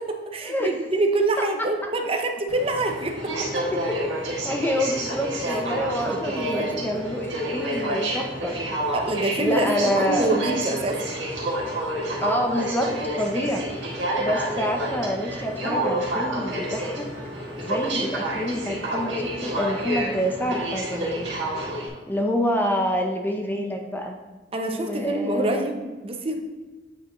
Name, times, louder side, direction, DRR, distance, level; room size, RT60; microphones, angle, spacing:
voice 1, 0.0-3.6 6.1-7.0 8.9-11.0 24.5-26.3, right 2 dB, 30° right, 4 dB, 0.6 m, -26 dB
Aircraft, 2.5-21.9, right 1 dB, 80° right, 1.8 m, -29 dB
voice 2, 3.5-4.0 4.4-8.6 9.4-10.5 12.2-13.6 14.2-17.0 17.6-21.3 22.1-24.2 24.7-25.7, equal, 10° left, 2 dB, 0.5 m, -27 dB
8.4 x 4.8 x 3.0 m, 1.2 s
head